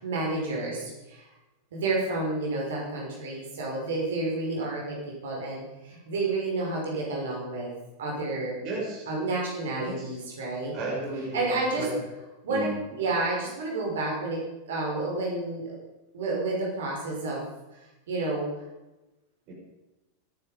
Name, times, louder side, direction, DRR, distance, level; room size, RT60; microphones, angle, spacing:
voice 1, 0.0-1.3 1.7-7.7 8.0-8.6 9.1-10.8 11.3-11.9 12.4-12.7 13.0-14.4 14.7-15.8 16.1-17.4 18.1-18.5, right 2 dB, 60° right, -2 dB, 5.8 m, -30 dB
voice 2, 8.6-9.1 9.9-10.2 10.7-12.0 12.5-12.7 19.5-19.6, right 2 dB, 40° right, -1 dB, 5.7 m, -34 dB
24.5 x 10.5 x 5.3 m, 1.0 s
figure-of-eight pair, 90°, 0 cm